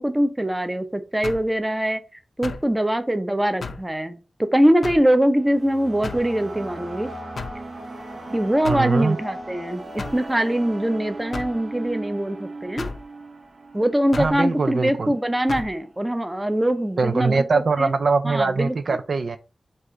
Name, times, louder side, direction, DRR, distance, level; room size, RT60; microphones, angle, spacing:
voice 1, 0.0-2.0 2.4-7.1 8.3-12.9 13.7-17.9 18.2-19.0, right 1 dB, 15° right, 0.6 m, -23 dB
sound 1, 1.2-1.5 2.4-2.7 3.6-3.9 4.8-5.1 6.0-6.3 7.4-7.6 8.6-8.9 10.0-10.2 11.3-11.6 12.8-13.0 14.1-14.4 15.5-15.7, left 4 dB, 70° left, 0.5 m, -33 dB
sound 2, 5.0-15.2, right 2 dB, 55° right, 0.8 m, -38 dB
voice 2, 8.7-9.2 14.2-15.1 17.0-19.4, right 4 dB, 70° right, 0.4 m, -22 dB
4.7 x 2.5 x 3.7 m
wide cardioid pair, 80°, 0 cm